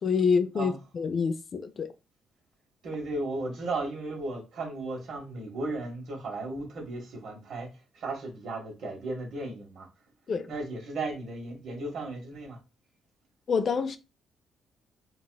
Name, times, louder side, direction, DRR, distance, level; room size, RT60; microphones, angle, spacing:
voice 1, 0.0-1.9 10.3-10.5 13.5-14.0, left 5 dB, 50° left, 0.4 m, -27 dB
voice 2, 2.8-7.7 7.9-9.9 10.5-12.6, right 2 dB, 65° right, 1.3 m, -35 dB
4.0 x 2.4 x 2.2 m
cardioid pair, 90°, 0 cm